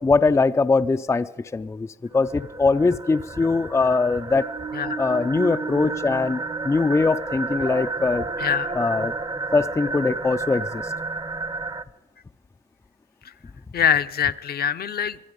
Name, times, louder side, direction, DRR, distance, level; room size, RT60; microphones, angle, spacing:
voice 1, 0.0-1.9 2.1-4.5 5.0-8.2 8.8-9.1 9.5-10.9, left 4 dB, 15° left, 9 dB, 0.4 m, -21 dB
sound 1, 2.2-11.8, right 3 dB, 20° right, 0.7 m, -31 dB
voice 2, 8.4-8.7 13.2-13.3 13.7-15.2, left 8 dB, 50° left, 10 dB, 0.7 m, -24 dB
22.0 x 12.0 x 5.2 m, 1.2 s
cardioid pair, 90°, 20 cm